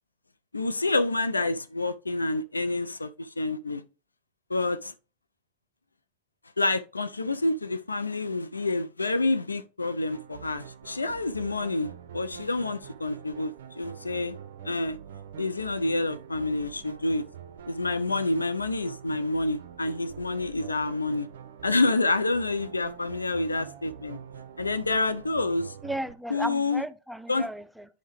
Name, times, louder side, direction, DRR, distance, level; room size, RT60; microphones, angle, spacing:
voice 1, 0.5-3.8 4.5-4.9 6.6-14.4 14.6-15.0 15.4-17.2 17.7-21.3 21.6-24.2 24.6-25.8 26.3-26.8 27.3-27.5, left 2 dB, 80° left, 0.4 m, -28 dB
sound 1, 10.1-26.1, right 8 dB, 65° right, 0.4 m, -45 dB
voice 2, 25.8-27.9, right 1 dB, ahead, 0.4 m, -34 dB
10.0 x 3.6 x 3.0 m
figure-of-eight pair, 85°, 0 cm